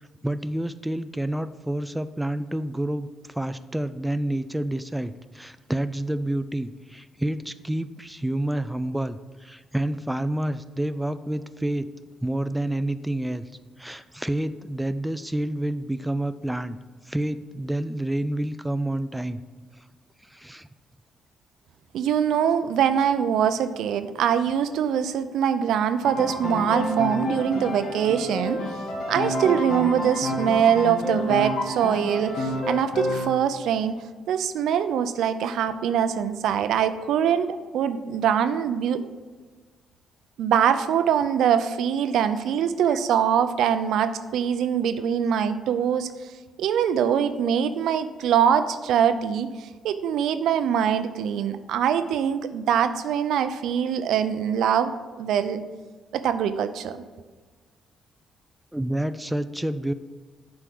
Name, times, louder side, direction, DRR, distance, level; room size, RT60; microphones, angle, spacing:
voice 1, 0.2-11.9 12.2-13.5 13.8-16.8 17.1-19.4 20.3-20.7 42.9-43.0 58.7-59.9, right 1 dB, 5° right, 11 dB, 0.4 m, -28 dB
voice 2, 21.9-28.6 29.1-34.0 34.3-39.0 40.4-46.1 46.6-55.6 56.1-57.0, right 8 dB, 80° right, 11 dB, 0.5 m, -23 dB
Piano, 26.0-33.4, left 1 dB, 65° left, 1.6 m, -29 dB
7.8 x 4.8 x 5.9 m, 1.4 s
cardioid pair, 90°, 0 cm